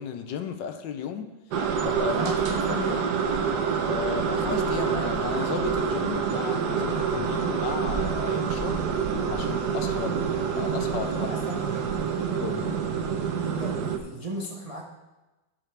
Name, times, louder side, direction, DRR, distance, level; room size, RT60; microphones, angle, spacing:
voice 1, 0.0-1.3 1.8-2.3 2.7-2.8 3.9-8.8 9.3-10.2 10.6-11.3 12.4-12.7, left 7 dB, 75° left, 7 dB, 1.3 m, -34 dB
sound 1, 1.5-14.0, right 6 dB, 65° right, 1.3 m, -27 dB
voice 2, 2.1-3.1 11.1-11.9 13.4-14.8, right 1 dB, 30° right, -1 dB, 0.7 m, -35 dB
15.0 x 5.7 x 3.3 m, 1.1 s
omnidirectional pair, 2.1 m